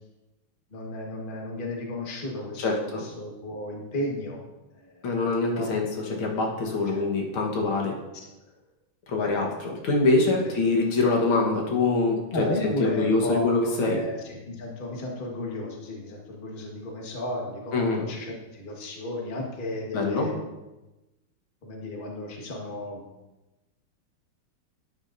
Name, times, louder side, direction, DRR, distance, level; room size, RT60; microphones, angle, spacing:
voice 1, 0.7-4.4 4.7-5.1 5.5-5.7 6.9-7.0 10.4-10.5 12.3-20.5 21.6-23.1, left 1 dB, 25° left, -1 dB, 1.4 m, -34 dB
voice 2, 2.6-3.0 5.0-7.9 9.1-12.2 12.6-14.0 17.7-18.0 19.9-20.3, left 3 dB, 75° left, 0 dB, 2.2 m, -24 dB
11.0 x 8.6 x 2.6 m, 1.0 s
omnidirectional pair, 2.3 m